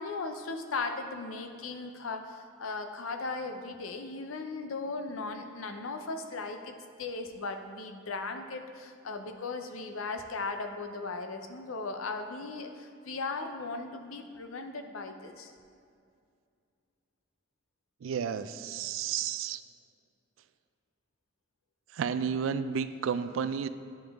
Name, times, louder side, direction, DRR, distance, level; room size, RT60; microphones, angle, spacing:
voice 1, 0.0-15.5, left 3 dB, 90° left, 6 dB, 0.6 m, -37 dB
voice 2, 18.0-19.6 21.9-23.7, right 7 dB, 70° right, 12 dB, 0.3 m, -32 dB
10.0 x 5.1 x 3.5 m, 2.3 s
head